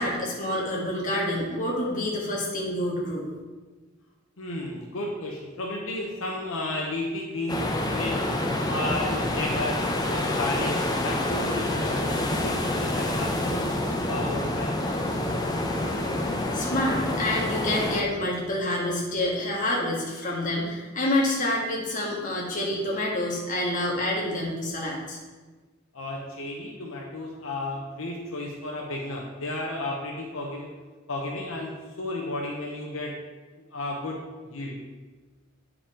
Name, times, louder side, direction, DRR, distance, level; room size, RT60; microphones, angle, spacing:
voice 1, 0.0-3.2 16.5-25.2, left 1 dB, 40° left, -3 dB, 1.6 m, -27 dB
voice 2, 4.4-8.3 8.7-13.7 14.0-14.7 25.9-30.7 31.1-33.1 33.7-34.8, left 1 dB, 75° left, -1 dB, 0.8 m, -33 dB
sound 1, 7.5-18.0, left 1 dB, 20° left, 0.7 m, -27 dB
8.6 x 4.9 x 3.7 m, 1.3 s
head